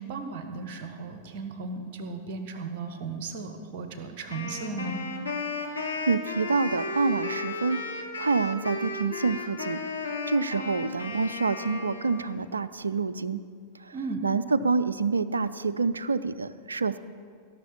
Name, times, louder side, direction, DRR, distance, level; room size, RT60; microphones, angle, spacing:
voice 1, 0.0-5.0 13.9-14.3, right 4 dB, 45° right, 7 dB, 1.3 m, -36 dB
Wind instrument woodwind instrument, 4.3-12.5, left 3 dB, 80° left, 1.4 m, -34 dB
voice 2, 5.7-7.8 8.2-9.8 10.3-13.4 13.9-14.0 14.2-17.0, right 4 dB, 75° right, 15 dB, 0.4 m, -27 dB
16.0 x 6.7 x 7.2 m, 2.1 s
figure-of-eight pair, 90°, 0 cm